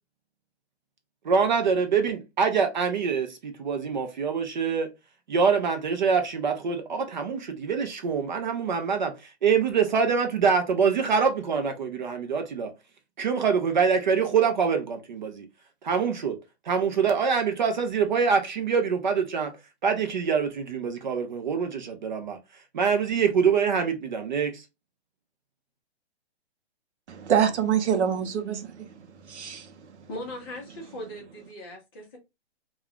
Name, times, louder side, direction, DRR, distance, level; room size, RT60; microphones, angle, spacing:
voice 1, 1.2-4.9 5.3-12.7 13.2-15.5 15.8-16.4 16.7-19.5 19.8-22.4 22.7-24.6, right 6 dB, 45° right, 0.5 m, -25 dB
voice 2, 27.1-30.1, right 8 dB, 80° right, 0.7 m, -26 dB
voice 3, 30.1-32.2, left 1 dB, 20° left, 0.7 m, -39 dB
2.3 x 2.3 x 3.4 m
hypercardioid pair, 160°, 34 cm